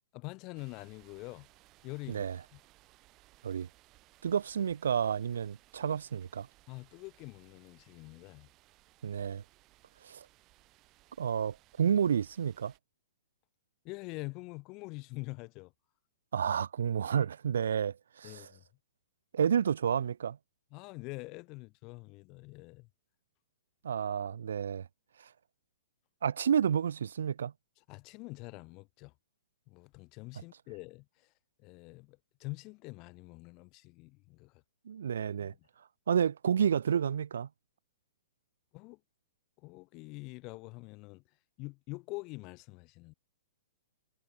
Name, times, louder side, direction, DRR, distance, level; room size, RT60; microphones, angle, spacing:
voice 1, 0.1-1.5 1.8-2.3 2.5-2.6 6.7-8.5 13.8-15.7 18.2-18.6 20.7-22.9 27.9-29.1 29.7-31.3 31.6-34.5 38.7-39.0 39.6-41.2 41.6-43.1, left 25 dB, 25° left, 2.0 m, -45 dB
sound 1, 0.5-12.8, right 19 dB, 25° right, 7.3 m, -63 dB
voice 2, 4.2-6.5 9.0-9.4 10.0-10.3 11.2-12.7 16.3-18.5 19.3-20.4 23.8-24.9 25.2-25.3 26.2-27.5 34.9-35.5 36.1-37.5, right 8 dB, 80° right, 2.0 m, -30 dB
hypercardioid pair, 165°, 0 cm